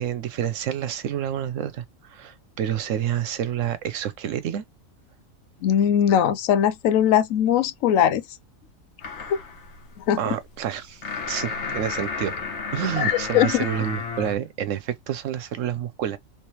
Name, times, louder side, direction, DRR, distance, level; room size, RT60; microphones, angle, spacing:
voice 1, 0.0-4.6 10.2-12.4 12.7-16.2, right 10 dB, 70° right, 0.9 m, -28 dB
voice 2, 5.6-8.2 9.3-9.4 10.1-10.2 13.0-13.7, left 9 dB, 80° left, 1.0 m, -20 dB
sound 1, 9.0-14.4, left 4 dB, 60° left, 1.2 m, -33 dB
3.3 x 3.3 x 2.9 m
omnidirectional pair, 1.4 m